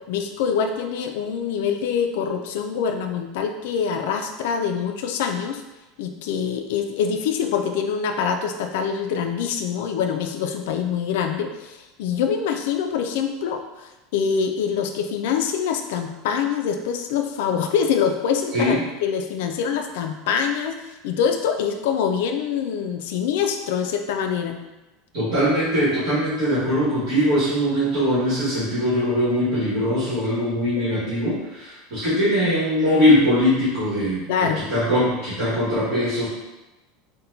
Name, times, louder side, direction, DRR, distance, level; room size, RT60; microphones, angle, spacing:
voice 1, 0.0-5.6 6.0-24.6 34.3-34.7, left 7 dB, 70° left, 5 dB, 0.3 m, -25 dB
voice 2, 25.1-34.2 34.7-36.3, equal, 55° right, -12 dB, 1.5 m, -21 dB
4.1 x 2.1 x 2.7 m, 1.0 s
supercardioid pair, 170°, 0 cm